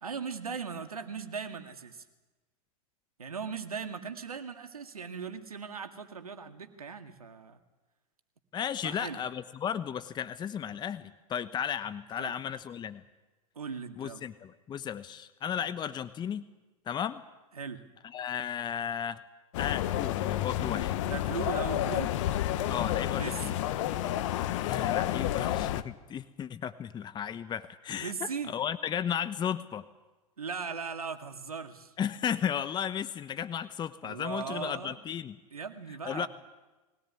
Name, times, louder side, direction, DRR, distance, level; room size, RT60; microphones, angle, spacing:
voice 1, 0.0-2.0 3.2-7.6 8.8-9.2 12.2-12.3 13.6-14.2 17.5-17.8 21.0-22.1 23.2-23.6 28.0-28.5 30.4-31.9 34.0-35.0 35.5-36.3, right 5 dB, 85° right, 7 dB, 2.2 m, -38 dB
voice 2, 8.5-13.0 14.0-16.4 16.9-17.2 18.0-19.2 19.6-20.9 22.7-23.6 24.7-29.8 32.0-35.4 36.1-36.3, left 8 dB, 25° left, 14 dB, 1.1 m, -34 dB
sound 1, 19.5-25.8, left 12 dB, 60° left, 1.3 m, -30 dB
22.0 x 17.5 x 9.7 m, 1.2 s
hypercardioid pair, 100°, 18 cm